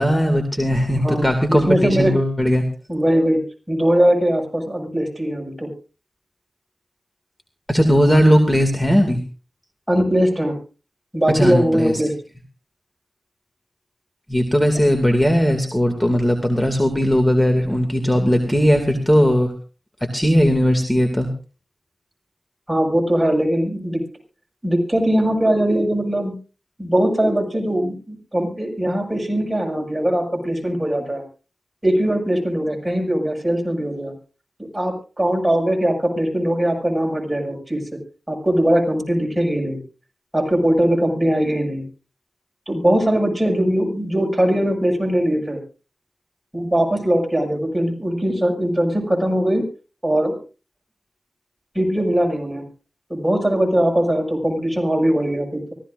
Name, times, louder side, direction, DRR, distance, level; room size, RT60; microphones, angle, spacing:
voice 1, 0.0-2.6 7.7-9.2 11.3-12.0 14.3-19.5 20.1-21.3, equal, 15° left, 4 dB, 2.4 m, -18 dB
voice 2, 0.9-2.1 2.9-3.4 3.7-5.7 9.9-10.5 11.1-12.1 22.7-24.0 24.6-26.3 26.8-31.2 31.8-34.1 34.6-37.8 38.3-39.8 40.3-41.8 42.7-45.6 46.5-49.6 50.0-50.3 51.7-52.6 53.1-55.7, right 1 dB, 15° right, 2 dB, 6.4 m, -20 dB
24.5 x 15.5 x 2.6 m, 0.35 s
cardioid pair, 50°, 0 cm